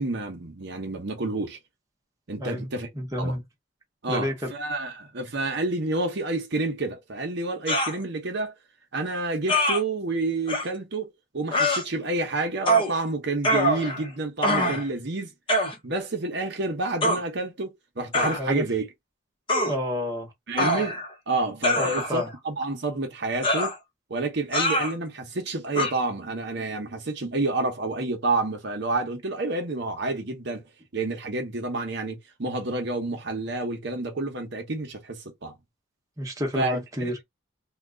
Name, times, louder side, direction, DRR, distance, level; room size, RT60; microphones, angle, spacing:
voice 1, 0.0-1.6 2.3-2.9 3.2-3.3 4.0-8.5 8.9-11.1 11.3-15.3 15.8-18.9 20.5-21.0 21.3-23.7 24.1-30.6 30.9-35.5 36.5-37.2, right 2 dB, 55° right, 0.8 m, -29 dB
voice 2, 3.0-3.4 4.1-4.3 18.4-18.6 19.6-20.3 21.8-22.3 36.2-37.2, left 1 dB, 15° right, 0.8 m, -29 dB
sound 1, 7.7-8.0 9.5-9.8 10.5-10.6 11.5-11.8 12.7-12.9 13.4-14.1 14.4-14.9 15.5-15.7 17.0-17.2 18.1-18.4 19.5-19.7 20.6-21.1 21.6-22.3 23.4-23.8 24.5-24.9 25.7-25.9, equal, 25° left, 0.8 m, -24 dB
2.9 x 2.3 x 3.7 m
head